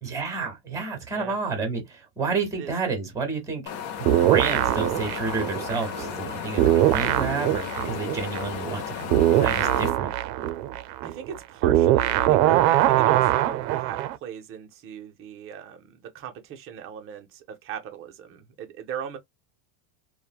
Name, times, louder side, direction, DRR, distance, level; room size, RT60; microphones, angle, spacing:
voice 1, 0.0-3.6 4.2-9.1 9.4-10.1, right 4 dB, 5° right, 0.9 m, -30 dB
Wind, 3.7-9.9, left 7 dB, 35° left, 0.4 m, -35 dB
sound 1, 4.1-6.3 6.6-14.2, right 14 dB, 80° right, 0.6 m, -22 dB
voice 2, 11.0-19.2, right 8 dB, 30° right, 0.5 m, -38 dB
3.0 x 2.2 x 2.3 m
supercardioid pair, 150°, 49 cm